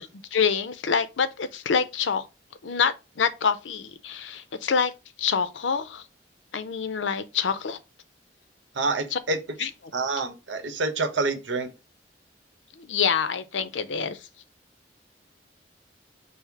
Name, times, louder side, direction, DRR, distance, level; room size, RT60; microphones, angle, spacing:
voice 1, 0.0-2.3 2.6-4.9 5.2-6.0 6.5-7.8 9.1-9.2 9.6-9.7 12.8-14.3, left 6 dB, 85° left, 0.5 m, -26 dB
voice 2, 8.7-9.4 9.9-11.7, right 3 dB, 85° right, 0.9 m, -27 dB
5.5 x 2.0 x 4.5 m
head